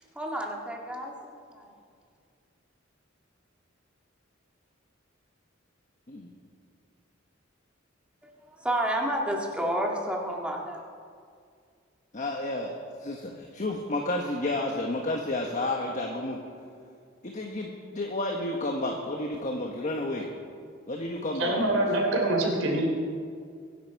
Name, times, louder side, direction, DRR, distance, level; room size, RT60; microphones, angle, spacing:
voice 1, 0.2-1.1 1.5-1.7 8.6-10.8, right 1 dB, 5° right, 0 dB, 1.9 m, -30 dB
voice 2, 12.1-12.7 13.0-16.4 17.2-20.3 20.9-21.8, left 2 dB, 40° left, 1 dB, 1.3 m, -31 dB
voice 3, 21.4-22.9, right 1 dB, 85° right, 1 dB, 3.4 m, -25 dB
23.5 x 11.0 x 4.7 m, 2.2 s
head